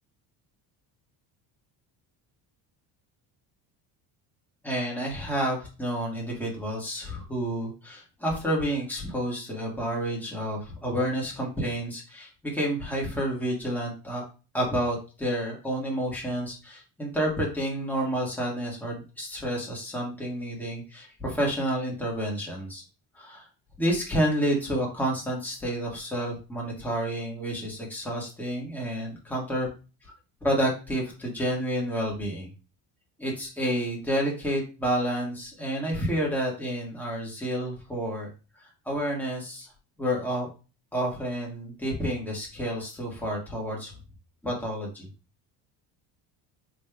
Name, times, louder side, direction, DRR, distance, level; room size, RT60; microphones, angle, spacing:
voice 1, 4.6-14.2 14.5-22.8 23.1-23.5 23.8-29.7 30.0-30.1 30.4-32.5 33.2-38.3 38.6-39.7 40.0-40.5 40.9-43.9 44.4-45.1, equal, 5° left, -3 dB, 1.7 m, -30 dB
5.1 x 3.2 x 2.3 m, 0.33 s
cardioid pair, 130°, 45 cm